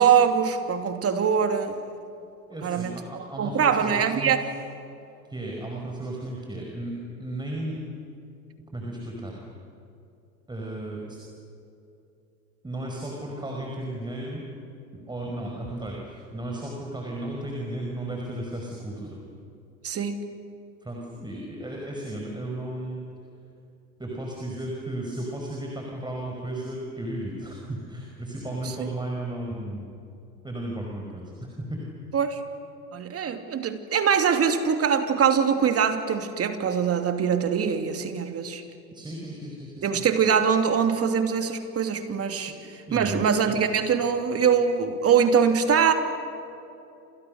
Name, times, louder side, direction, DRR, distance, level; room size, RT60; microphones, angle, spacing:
voice 1, 0.0-1.8 2.6-4.4 19.8-20.2 28.8-28.9 32.1-32.4 32.9-38.6 39.8-45.9, right 7 dB, 30° right, 7 dB, 2.9 m, -23 dB
voice 2, 2.5-4.3 5.3-7.8 8.7-9.3 10.5-11.2 12.6-14.4 14.9-19.2 20.8-23.0 24.0-29.9 30.4-31.3 31.6-31.8 38.9-40.0 42.3-42.5 42.9-43.6, right 1 dB, 10° right, -1 dB, 5.3 m, -34 dB
29.5 x 28.0 x 6.6 m, 2.8 s
hypercardioid pair, 95°, 50 cm